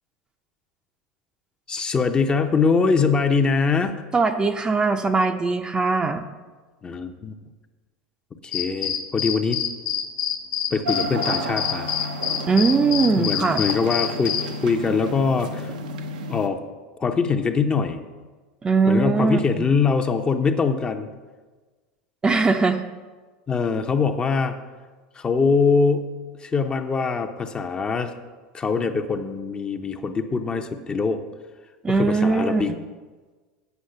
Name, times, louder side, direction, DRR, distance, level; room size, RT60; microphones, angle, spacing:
voice 1, 1.7-4.0 6.8-7.3 8.4-9.6 10.7-11.9 13.2-15.7 16.3-16.6 17.0-18.0 18.9-21.1 23.5-24.6 25.1-26.1 26.4-28.1 28.5-31.2 31.9-32.7, left 5 dB, 25° left, 6 dB, 0.7 m, -23 dB
voice 2, 4.1-6.3 12.5-13.6 18.6-19.7 22.2-22.8 31.8-32.8, right 4 dB, 20° right, 6 dB, 0.6 m, -21 dB
sound 1, 8.5-14.5, left 9 dB, 55° left, 1.1 m, -27 dB
sound 2, 10.8-16.5, equal, 85° right, 0.8 m, -32 dB
8.3 x 5.5 x 6.6 m, 1.3 s
hypercardioid pair, 100°, 4 cm